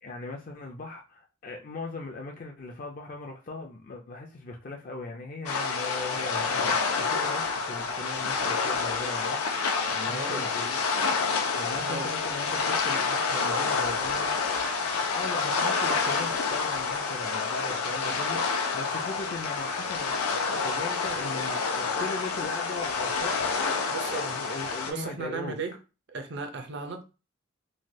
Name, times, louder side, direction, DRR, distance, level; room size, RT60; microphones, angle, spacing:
voice 1, 0.0-11.2 11.5-23.3 23.6-25.6, left 3 dB, 40° left, 0.4 m, -39 dB
sound 1, 5.5-24.9, left 4 dB, 90° left, 0.6 m, -28 dB
voice 2, 10.0-10.5 11.8-12.1 23.7-24.4 24.8-25.7 26.1-27.0, right 4 dB, 55° right, 0.5 m, -36 dB
3.1 x 2.2 x 2.6 m
head